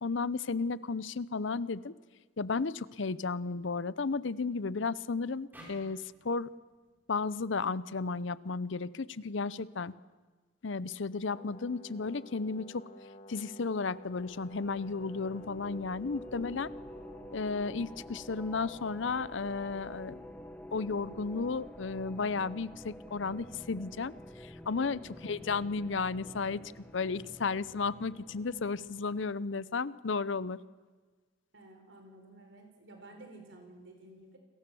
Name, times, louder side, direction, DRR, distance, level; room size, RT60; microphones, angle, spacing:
voice 1, 0.0-1.9 2.4-6.5 7.1-9.9 10.6-12.9 13.3-16.7 17.3-20.2 20.7-30.6, left 4 dB, 60° left, 18 dB, 0.6 m, -34 dB
sound 1, 5.5-8.8, equal, 10° right, 6.9 m, -57 dB
Brass instrument, 11.3-18.3, left 1 dB, 35° left, 2.0 m, -52 dB
sound 2, 14.1-29.5, equal, 10° left, 1.0 m, -49 dB
voice 2, 31.5-34.4, right 2 dB, 60° right, 4 dB, 4.7 m, -53 dB
29.0 x 22.0 x 7.0 m, 1.4 s
head